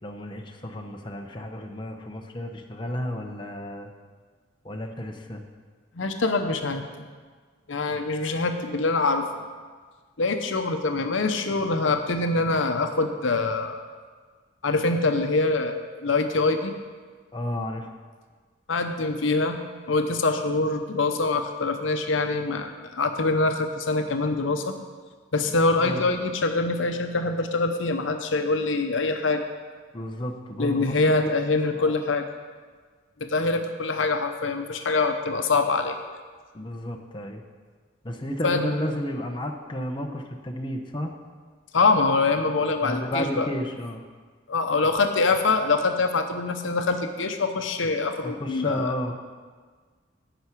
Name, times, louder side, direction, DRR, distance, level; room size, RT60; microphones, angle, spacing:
voice 1, 0.0-3.9 4.6-5.4 17.3-17.9 25.8-26.1 29.9-32.0 36.5-37.4 38.0-41.1 42.8-44.0 48.2-49.2, equal, 25° left, 3 dB, 0.8 m, -32 dB
voice 2, 6.0-6.8 7.7-9.4 10.2-13.8 14.6-16.7 18.7-19.6 19.9-24.7 25.3-29.4 30.6-32.2 33.3-36.0 38.4-38.8 41.7-43.5 44.5-48.9, left 3 dB, 70° left, 6 dB, 0.8 m, -24 dB
10.0 x 6.0 x 8.3 m, 1.5 s
head